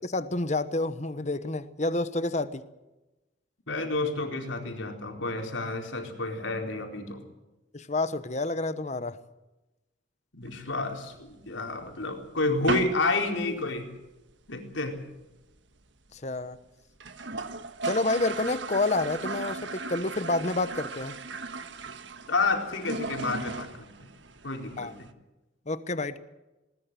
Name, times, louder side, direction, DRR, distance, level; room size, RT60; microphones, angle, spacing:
voice 1, 0.0-2.6 7.7-9.2 16.1-16.6 17.8-21.2 24.8-24.9 25.7-26.2, left 2 dB, 40° left, 13 dB, 1.2 m, -29 dB
voice 2, 3.7-7.2 10.3-13.9 14.5-15.0 22.3-23.9 24.4-25.1, left 2 dB, 85° left, 3 dB, 4.4 m, -30 dB
sound 1, 10.4-11.5 11.9-12.0 12.2-12.4 12.7-13.1 13.4-13.5 13.8-13.9 14.1-14.6 14.9-15.0 15.2-15.3 15.5-15.6 16.2-16.3 16.5-16.6 16.9-25.1, right 3 dB, 70° right, 1.5 m, -37 dB
20.5 x 19.0 x 7.7 m, 1.0 s
head